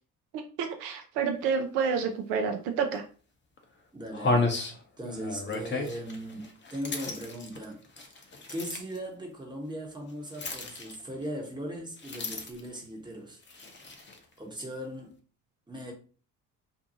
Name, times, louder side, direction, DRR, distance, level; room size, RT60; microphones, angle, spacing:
voice 1, 0.3-3.0, right 6 dB, 70° right, 0.6 m, -29 dB
sound 1, 2.9-3.0 3.6-3.7 4.1-9.0 10.3-11.3 12.0-12.8 13.4-14.2, left 3 dB, 25° left, 0.7 m, -33 dB
voice 2, 3.9-8.1 8.5-13.4 14.4-15.1 15.7-15.9, equal, 10° right, 1.0 m, -39 dB
2.6 x 2.2 x 2.7 m
hypercardioid pair, 50°, 44 cm